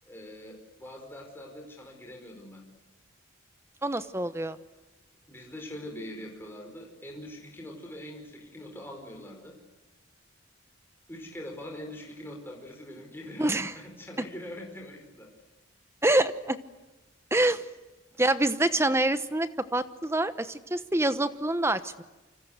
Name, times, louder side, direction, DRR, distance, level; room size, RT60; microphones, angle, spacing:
voice 1, 0.0-2.6 5.3-9.6 11.1-15.3 18.2-18.4, left 1 dB, 10° left, 1 dB, 4.9 m, -43 dB
voice 2, 3.8-4.6 13.4-13.7 16.0-16.6 17.3-17.6 18.2-22.0, right 1 dB, 15° right, 12 dB, 1.0 m, -26 dB
29.0 x 25.5 x 8.1 m, 1.2 s
head